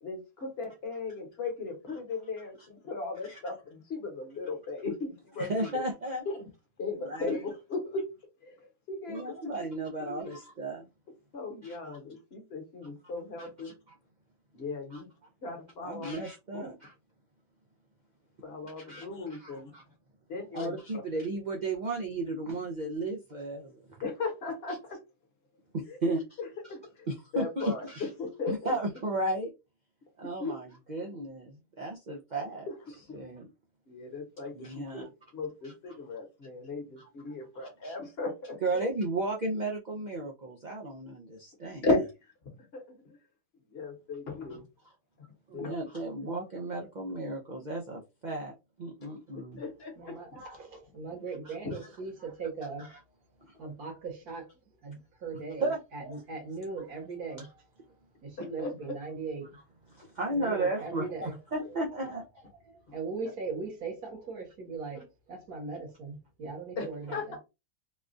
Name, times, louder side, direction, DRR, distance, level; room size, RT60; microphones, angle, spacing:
voice 1, 0.0-5.8 6.2-6.5 6.8-8.1 8.4-9.3 10.0-10.3 11.3-13.7 14.5-15.1 15.4-16.1 16.5-16.7 18.4-19.8 20.3-20.8 24.0-25.0 25.8-26.0 26.4-27.1 27.3-28.8 30.4-30.5 32.7-33.2 33.9-35.0 35.3-38.6 41.8-42.1 42.7-43.2 43.7-44.6 45.5-45.7 49.0-49.2 49.6-50.4 51.6-51.8 58.4-59.0 61.6-61.8 66.8-67.4, left 3 dB, 45° left, 1.2 m, -36 dB
voice 2, 5.4-6.3 7.0-7.4 9.1-10.9 11.6-11.8 13.4-13.7 14.9-15.0 15.8-16.9 18.8-19.0 19.3-19.8 20.5-24.0 25.7-26.4 27.1-28.1 28.5-29.5 30.2-32.7 33.1-33.5 34.5-35.1 35.6-35.7 37.8-37.9 38.6-41.8 45.5-48.5 48.8-49.6 51.5-51.6 52.2-52.3 55.6-55.8 59.9-62.2, right 2 dB, 85° right, 0.4 m, -34 dB
voice 3, 50.0-52.9 53.6-54.5 54.8-57.5 58.2-59.5 60.3-61.4 62.7-67.4, right 4 dB, 70° right, 1.8 m, -39 dB
3.9 x 2.4 x 2.5 m
omnidirectional pair, 1.7 m